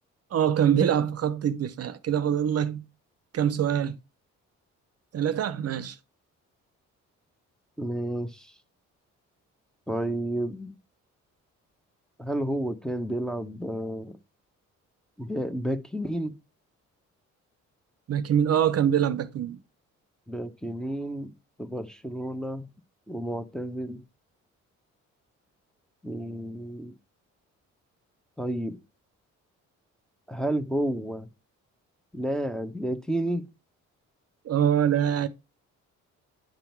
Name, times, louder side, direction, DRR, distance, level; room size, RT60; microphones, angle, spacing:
voice 1, 0.3-2.8 3.3-4.0 5.1-6.0 18.1-19.6 34.4-35.3, right 9 dB, 55° right, 0.7 m, -24 dB
voice 2, 7.8-8.5 9.9-10.7 12.2-14.2 15.2-16.3 20.3-21.3 21.6-22.7 23.1-24.0 26.0-26.9 28.4-28.8 30.3-31.3 32.1-33.4, right 1 dB, ahead, 0.9 m, -31 dB
10.5 x 3.8 x 4.4 m
cardioid pair, 90°, 30 cm